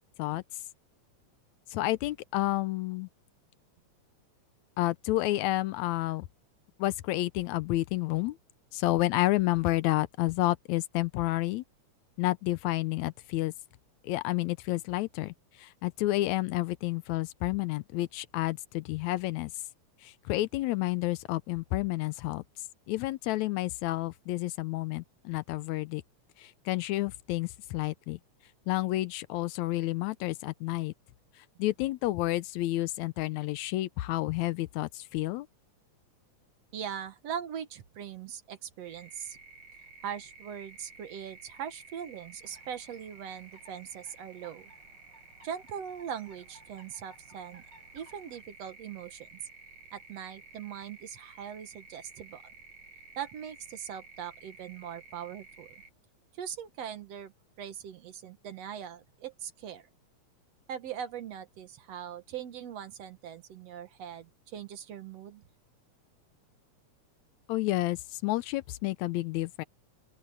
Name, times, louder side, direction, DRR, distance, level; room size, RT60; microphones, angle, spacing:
voice 1, 1.7-3.1 4.8-6.3 6.8-8.4 8.7-11.6 12.2-13.5 14.0-19.5 20.0-22.4 22.9-26.0 26.4-28.2 28.7-30.9 31.6-35.5 67.5-69.6, left 17 dB, 80° left, 1.9 m, -30 dB
voice 2, 36.7-39.4 40.0-44.7 45.4-47.6 47.9-49.4 49.9-52.5 53.2-55.8 56.4-57.3 57.6-59.9 60.7-65.4, right 9 dB, 65° right, 2.3 m, -41 dB
sound 1, 38.8-55.9, right 4 dB, 80° right, 6.9 m, -53 dB
sound 2, 42.4-48.4, right 2 dB, 35° right, 5.9 m, -60 dB
open air
omnidirectional pair, 3.3 m